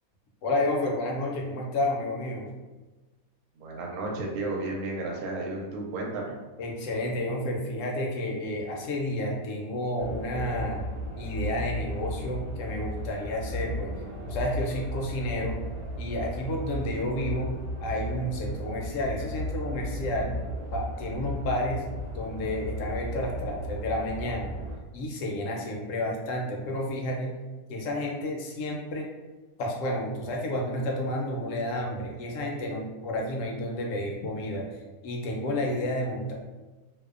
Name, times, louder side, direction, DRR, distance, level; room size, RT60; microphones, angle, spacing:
voice 1, 0.4-2.5 6.6-10.8 11.2-15.6 16.0-17.5 17.8-20.3 20.7-21.8 22.1-24.6 24.9-27.4 27.7-29.1 29.6-36.3, left 1 dB, 70° left, -1 dB, 0.9 m, -31 dB
voice 2, 3.6-6.4, right 2 dB, 85° right, -1 dB, 1.1 m, -33 dB
sound 1, 10.0-24.8, equal, 60° right, 0.7 m, -35 dB
2.6 x 2.1 x 2.4 m, 1.2 s
omnidirectional pair, 1.5 m